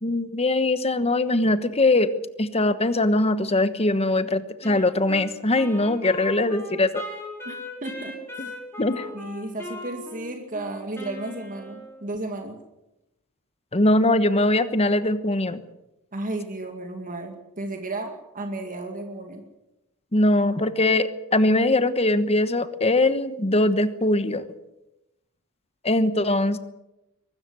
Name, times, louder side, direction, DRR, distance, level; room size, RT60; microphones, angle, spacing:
voice 1, 0.0-2.1 2.4-7.0 8.8-9.1 13.7-15.6 20.1-24.4 25.8-26.6, left 2 dB, 30° left, 12 dB, 1.2 m, -21 dB
Wind instrument woodwind instrument, 4.6-12.1, left 1 dB, 10° left, 5.0 m, -39 dB
voice 2, 7.8-8.2 9.1-12.6 16.1-19.4, right 2 dB, 35° right, 4 dB, 2.3 m, -33 dB
23.0 x 13.5 x 9.5 m, 0.94 s
head